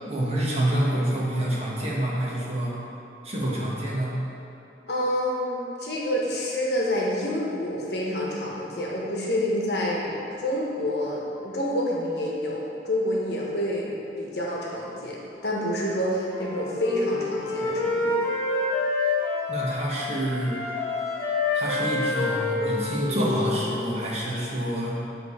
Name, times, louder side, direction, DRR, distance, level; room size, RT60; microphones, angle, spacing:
voice 1, 0.1-2.7 3.2-4.2 19.5-20.6 21.5-25.0, right 1 dB, 35° right, -5 dB, 1.1 m, -27 dB
voice 2, 4.9-10.1 10.4-18.2, left 1 dB, 65° left, -4 dB, 1.1 m, -28 dB
Wind instrument woodwind instrument, 16.3-19.9 20.3-23.9, left 3 dB, 15° left, 1.2 m, -27 dB
7.8 x 3.4 x 4.8 m, 2.8 s
head